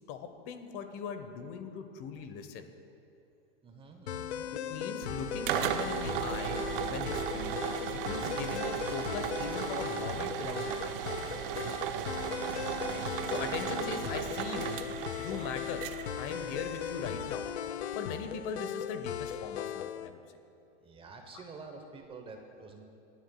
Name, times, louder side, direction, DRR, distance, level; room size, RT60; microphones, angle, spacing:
voice 1, 0.1-2.7 4.5-7.5 7.9-11.1 12.8-13.0 13.3-14.7 15.2-15.8 16.2-17.5 17.9-20.2, left 6 dB, 40° left, 8 dB, 1.0 m, -40 dB
voice 2, 3.6-4.5 11.4-12.1 20.8-22.8, right 4 dB, 15° right, 4 dB, 0.9 m, -48 dB
sound 1, 4.1-20.1, left 10 dB, 75° left, 0.5 m, -38 dB
sound 2, 5.0-17.5, right 11 dB, 50° right, 0.7 m, -36 dB
28.0 x 9.4 x 2.3 m, 2.7 s
hypercardioid pair, 125°, 33 cm